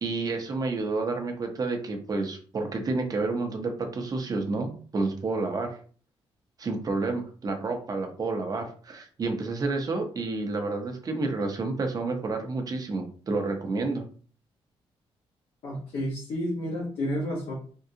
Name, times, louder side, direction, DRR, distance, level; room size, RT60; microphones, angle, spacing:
voice 1, 0.0-5.8 6.6-14.0, right 3 dB, 40° right, 4 dB, 0.8 m, -30 dB
voice 2, 15.6-17.5, equal, 80° left, -5 dB, 1.1 m, -31 dB
3.6 x 2.3 x 2.7 m, 0.43 s
cardioid pair, 115°, 10 cm